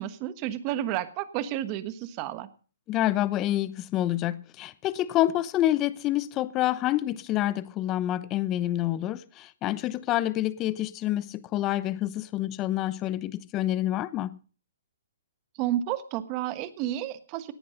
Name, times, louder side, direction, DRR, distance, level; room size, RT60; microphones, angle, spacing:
voice 1, 0.0-2.5 15.6-17.5, right 12 dB, 30° right, 1.4 m, -31 dB
voice 2, 2.9-14.4, left 14 dB, 25° left, 0.8 m, -27 dB
17.5 x 10.0 x 5.2 m
hypercardioid pair, 145°, 0 cm